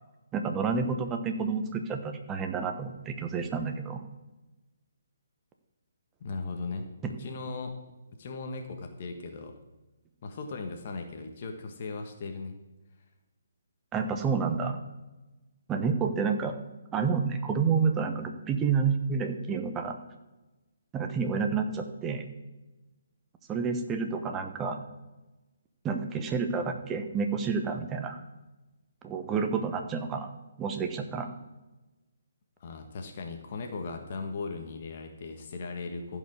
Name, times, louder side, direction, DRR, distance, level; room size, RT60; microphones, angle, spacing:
voice 1, 0.3-4.0 13.9-14.8 15.7-16.5 16.9-20.0 20.9-22.2 23.5-24.8 25.8-28.2 29.0-30.3 30.6-31.3, right 5 dB, 15° right, 5 dB, 1.1 m, -29 dB
voice 2, 6.2-7.7 8.1-9.5 10.2-12.5 32.6-36.2, left 3 dB, 45° left, 4 dB, 1.6 m, -38 dB
14.5 x 5.5 x 6.5 m, 1.1 s
hypercardioid pair, 150°, 0 cm